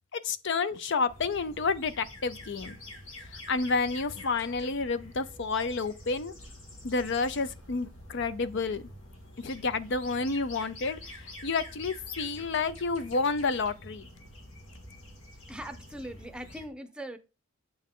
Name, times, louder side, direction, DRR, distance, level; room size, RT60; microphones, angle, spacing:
voice 1, 0.1-2.8 3.3-6.3 6.8-8.8 9.4-14.1, left 4 dB, 60° left, 0.6 m, -30 dB
sound 1, 1.1-16.7, left 1 dB, 75° left, 2.2 m, -47 dB
voice 2, 15.5-17.2, right 1 dB, 5° right, 0.6 m, -41 dB
8.0 x 7.0 x 3.7 m
head